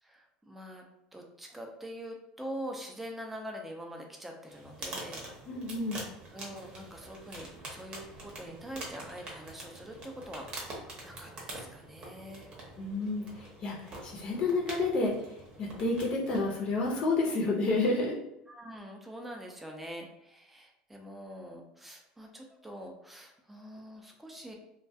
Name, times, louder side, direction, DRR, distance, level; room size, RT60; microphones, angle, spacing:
voice 1, 0.0-0.8 1.1-5.3 6.3-12.5 18.5-24.5, equal, 5° right, 2 dB, 0.4 m, -44 dB
sound 1, 4.5-17.1, right 2 dB, 40° right, 0.8 m, -45 dB
voice 2, 5.5-6.0 12.8-18.2, left 3 dB, 45° left, -3 dB, 0.6 m, -30 dB
2.2 x 2.2 x 2.6 m, 0.81 s
supercardioid pair, 130°, 3 cm